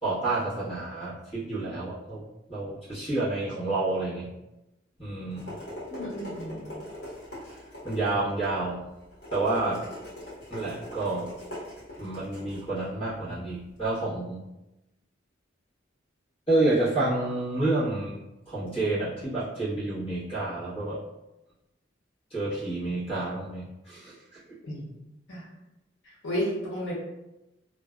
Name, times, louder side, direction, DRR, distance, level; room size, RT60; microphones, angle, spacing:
voice 1, 0.0-2.2 2.5-4.3 5.0-5.6 7.8-8.8 9.3-9.8 10.5-11.3 12.0-14.4 16.5-21.0 22.3-24.1, right 2 dB, 30° left, -10 dB, 1.1 m, -29 dB
sound 1, 5.0-13.9, left 1 dB, 60° left, 1.0 m, -42 dB
voice 2, 5.9-6.7 24.6-25.5 26.2-26.9, equal, 80° left, -6 dB, 0.7 m, -33 dB
2.5 x 2.1 x 2.3 m, 0.96 s
head